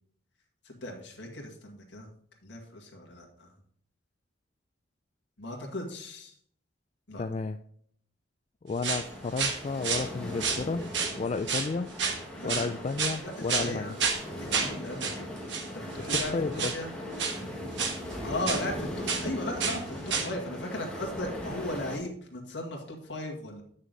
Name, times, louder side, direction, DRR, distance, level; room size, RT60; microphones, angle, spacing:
voice 1, 0.6-2.1 2.4-3.5 5.4-6.3 7.1-7.2 12.4-12.8 13.2-14.0 14.4-15.3 15.7-16.9 18.2-23.6, left 1 dB, 70° left, 1 dB, 2.0 m, -37 dB
voice 2, 7.2-7.6 8.6-12.0 12.4-14.0 16.1-16.8, left 4 dB, 35° left, 7 dB, 0.3 m, -32 dB
sound 1, 8.8-9.1 9.4-10.1 10.4-11.2 11.5-11.7 12.0-12.2 12.5-13.2 13.5-13.7 14.0-14.2 14.5-14.7 15.0-15.2 15.5-15.7 16.0-16.3 16.6-16.8 17.2-17.4 17.8-18.7 19.1-19.3 19.6-19.8 20.1-20.3, right 5 dB, 70° right, 1.3 m, -30 dB
sound 2, 8.9-22.0, left 1 dB, 5° left, 1.6 m, -39 dB
9.0 x 6.4 x 3.9 m, 0.62 s
head